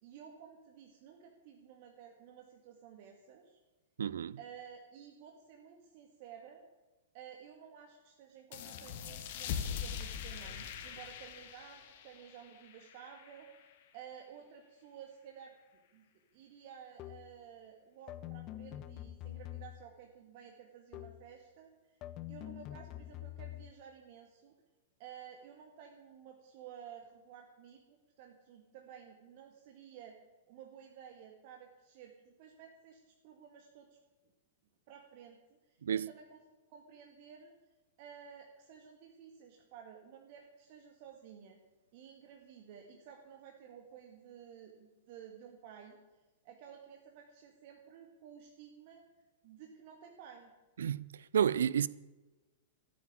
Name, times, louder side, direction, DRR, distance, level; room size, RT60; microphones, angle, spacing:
voice 1, 0.0-3.6 4.4-6.6 7.1-13.5 13.9-15.5 15.9-16.1 16.3-21.7 22.3-24.5 25.0-30.2 30.5-33.9 34.9-35.4 35.7-36.4 36.7-37.5 38.0-41.6 41.9-46.0 46.4-49.0 49.4-50.5, right 8 dB, 45° right, 1.9 m, -53 dB
voice 2, 4.0-4.4 35.8-36.1 50.8-51.1 51.3-51.9, right 8 dB, 65° right, 0.5 m, -30 dB
sound 1, 8.5-13.7, left 8 dB, 50° left, 1.6 m, -42 dB
sound 2, 17.0-17.4 18.1-20.0 20.9-21.3 22.0-23.7, left 14 dB, 35° left, 0.7 m, -46 dB
14.0 x 8.7 x 9.0 m
figure-of-eight pair, 100°, 0 cm